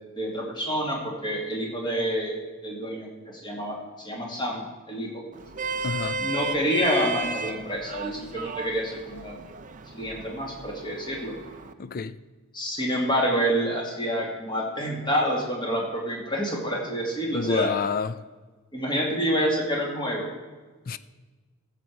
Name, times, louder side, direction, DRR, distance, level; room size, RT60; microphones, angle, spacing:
voice 1, 0.2-2.4 2.6-5.2 6.2-9.4 9.9-11.3 12.5-17.7 18.7-20.3, equal, 20° left, 2.2 m, -28 dB
Vehicle horn car horn honking, 5.3-11.7, right 4 dB, 35° right, 0.5 m, -34 dB
voice 2, 5.8-6.2 11.8-12.2 17.3-18.2 20.9-21.0, left 5 dB, 40° left, 0.4 m, -28 dB
15.0 x 7.5 x 4.7 m
head